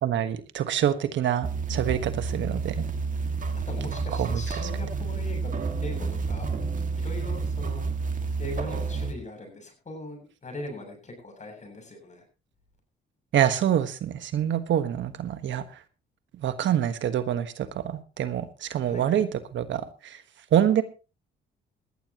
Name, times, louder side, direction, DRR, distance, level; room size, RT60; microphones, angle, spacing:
voice 1, 0.0-2.8 4.2-4.4 13.3-15.6 16.4-19.3 19.5-20.2 20.5-20.8, right 10 dB, 70° right, 10 dB, 1.5 m, -26 dB
sound 1, 1.4-9.1, right 4 dB, 40° right, 2.2 m, -30 dB
voice 2, 3.6-5.5 5.8-6.5 6.9-7.9 8.4-12.2 18.8-19.2, left 2 dB, 35° left, 4 dB, 7.7 m, -40 dB
19.5 x 14.0 x 3.0 m, 0.32 s
cardioid pair, 90°, 20 cm